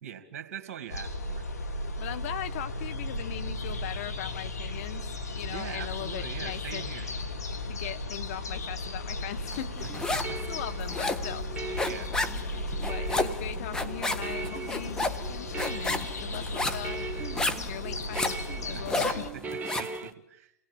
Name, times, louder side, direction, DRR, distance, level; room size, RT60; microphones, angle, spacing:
voice 1, 0.0-1.5 5.5-7.1 10.1-10.4 11.9-12.1 18.7-20.5, right 9 dB, 55° right, 8 dB, 2.5 m, -42 dB
sound 1, 0.9-19.3, left 2 dB, 80° left, 2.0 m, -36 dB
voice 2, 2.0-5.1 5.3-6.9 7.7-9.9 10.5-11.5 12.7-17.1 17.7-19.2, left 11 dB, 55° left, 11 dB, 1.4 m, -39 dB
sound 2, 9.5-10.4 10.7-20.0, left 2 dB, 10° left, 1.4 m, -31 dB
sound 3, 9.6-20.1, right 4 dB, 20° right, 1.3 m, -40 dB
29.5 x 19.0 x 7.1 m, 0.82 s
hypercardioid pair, 110°, 8 cm